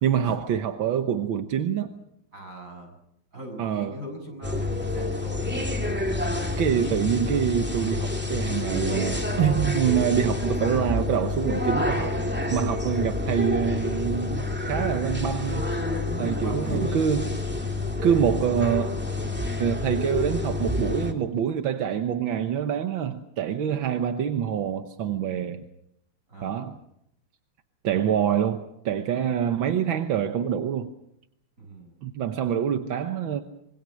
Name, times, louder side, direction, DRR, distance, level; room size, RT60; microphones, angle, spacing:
voice 1, 0.0-1.9 3.6-4.0 6.6-15.7 16.2-17.3 18.0-19.0 19.6-25.7 26.4-26.8 27.8-30.9 32.0-33.4, right 9 dB, 80° right, 7 dB, 1.9 m, -26 dB
voice 2, 2.3-3.0 3.3-5.6 16.0-17.3 18.0-18.3 26.3-26.7 31.6-31.9, right 1 dB, 40° right, 2 dB, 7.7 m, -38 dB
sound 1, 4.4-21.1, left 2 dB, 5° right, 2.3 m, -28 dB
26.5 x 24.0 x 6.4 m, 0.77 s
omnidirectional pair, 2.1 m